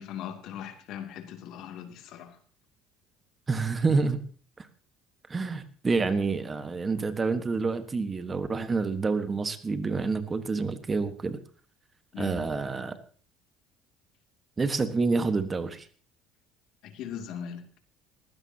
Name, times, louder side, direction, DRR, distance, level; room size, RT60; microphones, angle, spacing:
voice 1, 0.0-2.4 12.1-12.4 16.8-17.6, left 9 dB, 65° left, 5 dB, 2.7 m, -39 dB
voice 2, 3.5-4.2 4.6-4.7 5.3-11.4 12.2-13.0 14.6-15.9, right 4 dB, 25° right, 10 dB, 1.4 m, -28 dB
19.0 x 16.0 x 2.9 m, 0.43 s
supercardioid pair, 105°, 0 cm